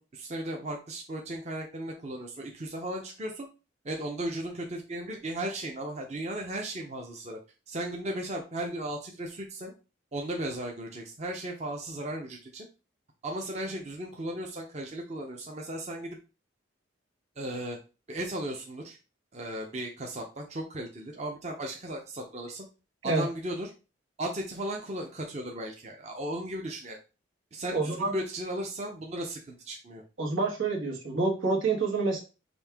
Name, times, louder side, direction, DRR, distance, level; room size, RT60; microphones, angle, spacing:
voice 1, 0.0-3.5 3.8-7.4 7.7-9.7 10.1-12.7 13.2-16.2 17.4-17.8 18.1-19.0 19.3-22.7 23.0-23.7 24.2-27.0 27.5-30.0, right 1 dB, 35° right, 1 dB, 0.6 m, -36 dB
voice 2, 27.7-28.1 30.2-32.2, right 3 dB, 85° right, 0 dB, 1.6 m, -27 dB
5.3 x 2.7 x 3.5 m, 0.31 s
head